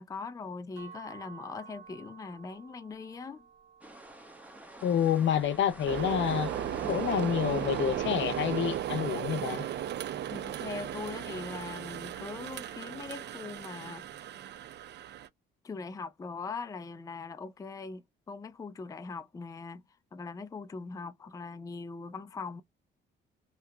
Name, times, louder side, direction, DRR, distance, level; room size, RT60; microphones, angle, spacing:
voice 1, 0.0-3.4 10.3-14.1 15.6-19.8 20.1-22.6, left 4 dB, 15° left, 0.4 m, -41 dB
sound 1, 0.8-6.6, right 6 dB, 90° right, 1.1 m, -54 dB
sound 2, 3.8-8.8, right 1 dB, 5° right, 0.8 m, -45 dB
voice 2, 4.8-6.5 6.9-9.6, left 9 dB, 70° left, 0.6 m, -28 dB
sound 3, 5.9-15.3, right 11 dB, 60° right, 0.5 m, -36 dB
2.8 x 2.3 x 3.2 m
cardioid pair, 90°, 20 cm